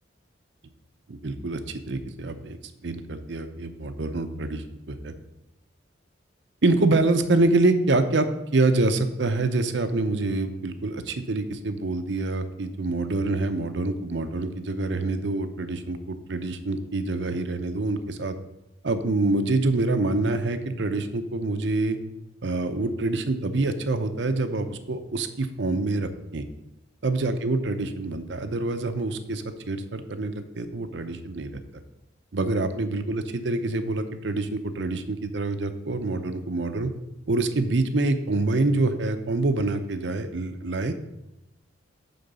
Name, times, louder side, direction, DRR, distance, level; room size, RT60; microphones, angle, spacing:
voice 1, 1.1-2.6 2.8-5.1 6.6-18.4 18.8-22.0 22.4-26.4 27.0-31.6 32.3-36.9 37.3-40.9, right 2 dB, 70° right, 9 dB, 0.7 m, -26 dB
9.3 x 3.9 x 6.7 m, 0.90 s
head